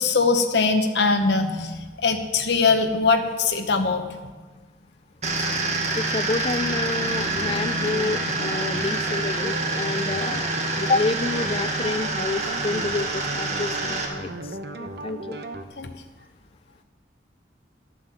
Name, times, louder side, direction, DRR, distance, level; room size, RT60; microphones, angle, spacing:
voice 1, 0.0-4.0 15.8-15.9, left 4 dB, 65° left, 5 dB, 1.0 m, -21 dB
sound 1, 5.2-14.1, right 2 dB, 35° right, 1.7 m, -27 dB
voice 2, 5.9-10.5 10.8-15.4, left 3 dB, 30° left, 14 dB, 0.4 m, -29 dB
sound 2, 7.2-15.6, right 2 dB, 60° right, 0.9 m, -36 dB
12.5 x 8.1 x 7.5 m, 1.3 s
head